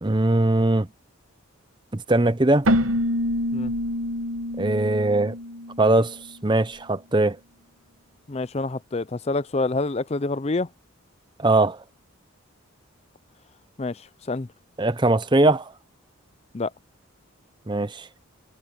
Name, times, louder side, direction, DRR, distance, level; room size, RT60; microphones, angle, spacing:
voice 1, 0.0-0.9 1.9-2.7 4.6-5.3 5.8-7.4 11.4-11.8 14.8-15.7 17.7-18.1, right 2 dB, 20° right, 0.8 m, -21 dB
Keyboard (musical), 2.6-6.3, left 1 dB, 70° right, 1.6 m, -26 dB
voice 2, 8.3-10.7 13.8-14.0 14.3-14.5 16.5-16.7, left 3 dB, 30° left, 0.5 m, -27 dB
head